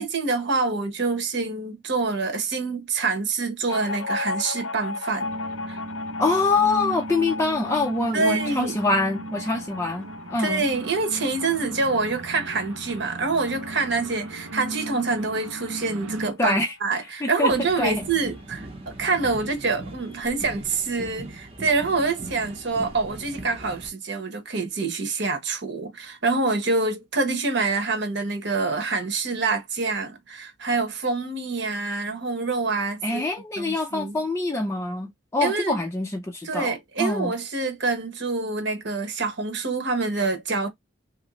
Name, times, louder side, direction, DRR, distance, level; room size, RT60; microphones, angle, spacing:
voice 1, 0.0-5.3 5.7-5.8 8.1-8.7 10.4-33.3 33.6-34.2 35.4-35.8 36.4-40.7, right 3 dB, 55° right, 1.1 m, -26 dB
sound 1, 3.7-16.8 17.1-17.2 17.5-18.2, left 3 dB, 80° left, 0.6 m, -37 dB
sound 2, 5.2-16.3, right 2 dB, 80° right, 0.6 m, -37 dB
voice 2, 6.2-10.7 16.4-16.7 17.2-18.0 33.0-37.3, left 3 dB, 15° left, 0.4 m, -25 dB
sound 3, 17.5-23.9, right 1 dB, 30° right, 0.8 m, -40 dB
3.0 x 2.7 x 3.0 m
head